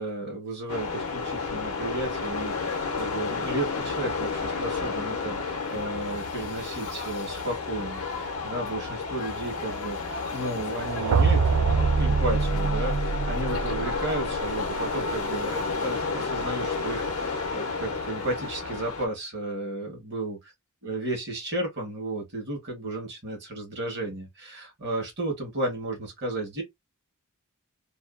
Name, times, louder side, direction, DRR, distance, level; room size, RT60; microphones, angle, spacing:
voice 1, 0.0-11.4 12.0-20.4 20.8-26.6, right 1 dB, 50° right, 1.2 m, -33 dB
sound 1, 0.7-19.1, left 4 dB, 70° left, 0.6 m, -31 dB
sound 2, 10.8-14.7, right 5 dB, 80° right, 0.4 m, -25 dB
2.5 x 2.2 x 2.4 m
head